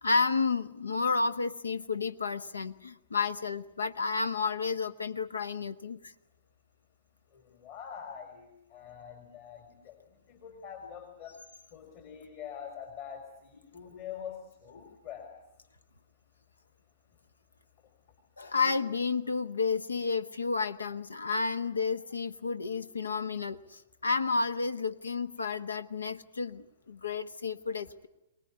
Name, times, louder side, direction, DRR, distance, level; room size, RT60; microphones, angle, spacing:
voice 1, 0.0-6.1 18.4-28.1, left 4 dB, 85° left, 14 dB, 1.1 m, -31 dB
voice 2, 7.3-10.0 10.3-11.3 11.7-15.4 25.4-25.5, left 8 dB, 45° left, 5 dB, 4.0 m, -45 dB
24.0 x 20.0 x 9.6 m, 0.87 s
hypercardioid pair, 120°, 0 cm